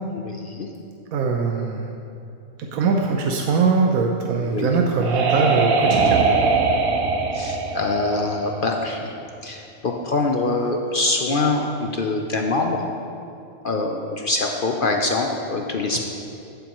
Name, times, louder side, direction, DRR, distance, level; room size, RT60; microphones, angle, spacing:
voice 1, 0.1-0.7 4.4-4.7 7.3-9.1 9.4-12.8 13.6-16.0, left 3 dB, 50° left, 2 dB, 0.7 m, -24 dB
voice 2, 1.1-1.9 2.6-6.2 15.9-16.0, right 4 dB, 85° right, 2 dB, 1.2 m, -21 dB
sound 1, 4.5-9.0, right 4 dB, 50° right, 0.9 m, -22 dB
14.5 x 8.8 x 3.1 m, 2.7 s
omnidirectional pair, 1.4 m